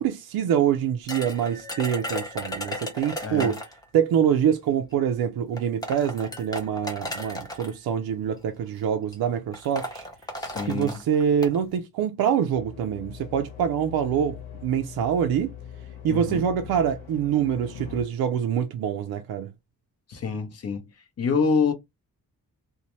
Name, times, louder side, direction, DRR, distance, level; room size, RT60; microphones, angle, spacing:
voice 1, 0.0-3.6 3.9-10.1 10.7-14.4 14.6-15.5 16.0-19.5, right 8 dB, 85° right, 0.5 m, -25 dB
sound 1, 1.1-3.8 4.9-5.0 5.6-7.7 8.6-8.8 9.1-9.2 9.5-11.6, left 1 dB, 10° left, 0.7 m, -35 dB
voice 2, 3.2-3.6 10.4-11.0 16.1-16.5 20.1-20.9 21.2-21.7, left 5 dB, 45° left, 0.7 m, -26 dB
sound 2, 12.5-18.0, left 7 dB, 85° left, 1.0 m, -41 dB
2.7 x 2.1 x 3.0 m
wide cardioid pair, 145°, 36 cm